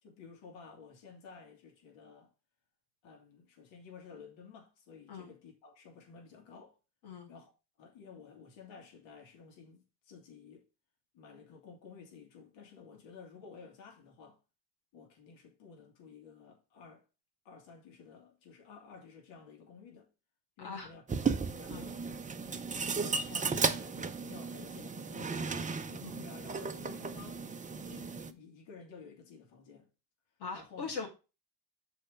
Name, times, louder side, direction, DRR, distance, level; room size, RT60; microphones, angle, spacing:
voice 1, 0.0-2.3 3.0-6.8 7.3-7.5 7.8-10.7 11.1-14.4 14.9-17.0 17.4-20.1 20.6-21.0 21.4-22.1 22.8-25.4 25.9-29.9 30.5-30.9, left 5 dB, 60° left, 2.3 m, -53 dB
voice 2, 20.6-20.9 21.7-21.9 26.0-26.2 30.4-31.1, left 5 dB, 90° left, 2.4 m, -41 dB
sound 1, 21.1-28.3, right 5 dB, 15° right, 0.7 m, -35 dB
6.6 x 4.5 x 5.0 m
hypercardioid pair, 80°, 50 cm